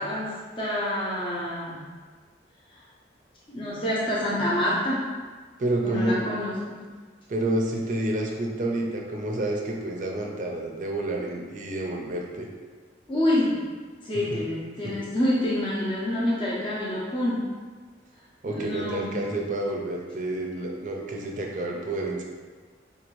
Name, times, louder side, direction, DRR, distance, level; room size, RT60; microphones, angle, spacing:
voice 1, 0.0-1.8 2.7-2.8 3.5-5.1 5.8-6.9 13.1-13.7 14.0-17.5 18.5-19.1, left 1 dB, 25° left, -7 dB, 0.5 m, -27 dB
voice 2, 5.6-6.3 7.3-12.5 14.3-14.4 14.8-15.0 18.4-22.2, right 1 dB, 45° right, 0 dB, 0.4 m, -29 dB
3.7 x 2.5 x 3.0 m, 1.5 s
head